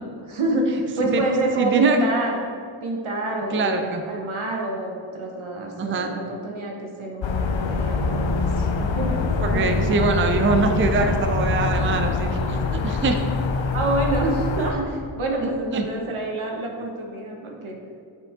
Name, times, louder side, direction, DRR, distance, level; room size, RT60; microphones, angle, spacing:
voice 1, 0.3-2.4 2.8-9.1 9.5-9.8 13.7-17.8, right 2 dB, 75° right, 0 dB, 1.3 m, -27 dB
voice 2, 1.6-2.0 3.5-4.0 5.8-6.1 9.4-13.2 15.4-15.9, right 4 dB, 25° right, 5 dB, 0.5 m, -23 dB
sound 1, 7.2-14.7, left 4 dB, 65° left, 0.7 m, -24 dB
7.2 x 5.2 x 3.6 m, 2.4 s
wide cardioid pair, 70°, 49 cm